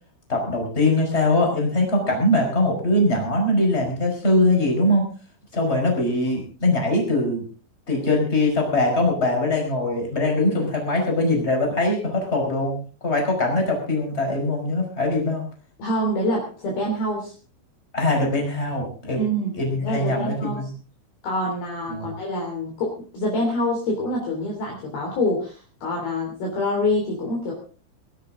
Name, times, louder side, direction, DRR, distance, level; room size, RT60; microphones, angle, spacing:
voice 1, 0.3-5.0 5.5-7.4 7.9-12.8 13.0-15.4 17.9-19.2 19.5-20.7 21.9-22.1, left 2 dB, 15° left, 1 dB, 5.0 m, -22 dB
voice 2, 15.8-17.3 19.2-19.5 19.8-20.7 21.2-27.5, left 1 dB, 50° left, -1 dB, 4.7 m, -26 dB
22.5 x 12.5 x 3.8 m, 0.38 s
omnidirectional pair, 5.8 m